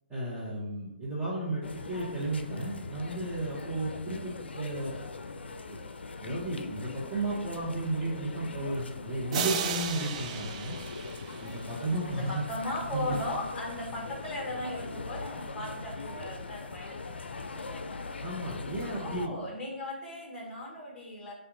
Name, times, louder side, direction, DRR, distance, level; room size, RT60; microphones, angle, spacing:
voice 1, 0.1-4.9 5.7-5.8 6.2-10.7 11.4-12.4 12.9-13.2 18.2-19.4, right 2 dB, 10° right, -7 dB, 1.0 m, -33 dB
sound 1, 1.6-19.3, left 4 dB, 75° left, 0.4 m, -41 dB
sound 2, 9.3-12.0, right 7 dB, 40° right, 0.4 m, -35 dB
voice 2, 12.1-18.0 19.0-21.3, left 1 dB, 15° left, -3 dB, 1.3 m, -38 dB
5.6 x 2.4 x 3.9 m, 0.84 s
figure-of-eight pair, 135°, 6 cm